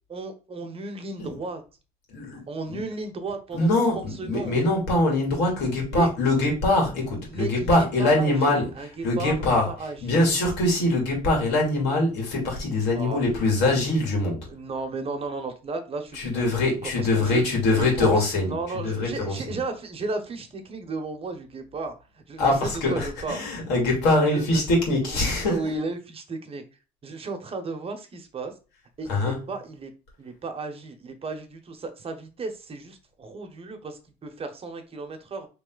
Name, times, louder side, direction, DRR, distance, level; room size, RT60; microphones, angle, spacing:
voice 1, 0.1-1.6 2.5-3.7 3.9-4.5 5.9-6.1 7.3-10.2 12.9-13.5 14.5-16.4 16.8-17.4 17.7-23.4 24.3-24.6 25.0-25.1 25.4-26.6 27.0-28.5 29.0-29.9 30.2-35.5, right 3 dB, 35° right, 1.0 m, -34 dB
voice 2, 2.1-2.4 2.7-2.8 3.5-9.7 10.0-14.5 16.1-19.6 22.4-25.6 29.1-29.4, left 2 dB, 85° left, 2.8 m, -23 dB
4.1 x 3.3 x 3.9 m
cardioid pair, 110°, 17 cm